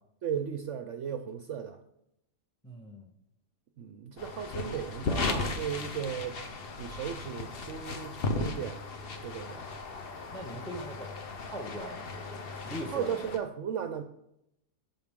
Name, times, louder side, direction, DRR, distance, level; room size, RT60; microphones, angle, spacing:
voice 1, 0.2-1.8 3.8-6.4 6.8-8.8 9.2-9.7 12.5-12.6 12.9-14.0, right 8 dB, 65° right, 8 dB, 0.8 m, -36 dB
voice 2, 2.6-3.1 10.3-11.1 11.4-13.4, equal, 5° left, 5 dB, 0.5 m, -41 dB
sound 1, 4.2-13.4, left 3 dB, 45° left, 0.9 m, -36 dB
14.5 x 5.8 x 3.6 m, 0.82 s
omnidirectional pair, 1.7 m